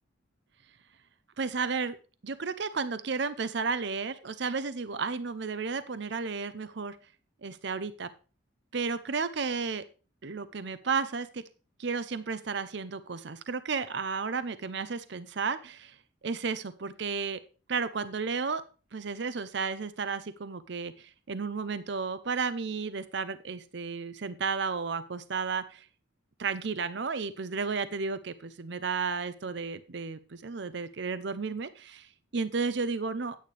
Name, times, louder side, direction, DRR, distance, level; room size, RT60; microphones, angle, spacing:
voice 1, 1.4-2.0 2.2-7.0 7.4-8.1 8.7-9.8 10.2-11.4 11.8-16.0 16.2-17.4 17.7-18.6 18.9-25.9 26.4-33.4, right 5 dB, 60° right, 13 dB, 0.6 m, -33 dB
10.0 x 9.3 x 3.3 m, 0.35 s
head